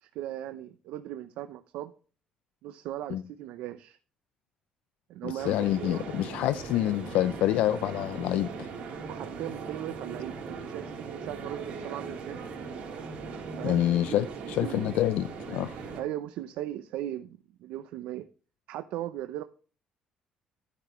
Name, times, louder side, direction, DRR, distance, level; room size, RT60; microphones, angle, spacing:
voice 1, 0.0-1.9 2.6-4.0 5.1-6.1 9.1-12.4 13.6-14.9 15.9-18.3 18.7-19.4, right 13 dB, 85° right, 0.6 m, -38 dB
voice 2, 5.2-8.7 13.6-15.8, left 13 dB, 80° left, 0.4 m, -27 dB
sound 1, 5.4-16.0, right 5 dB, 65° right, 3.6 m, -39 dB
13.0 x 7.4 x 3.1 m
cardioid pair, 140°, 2 cm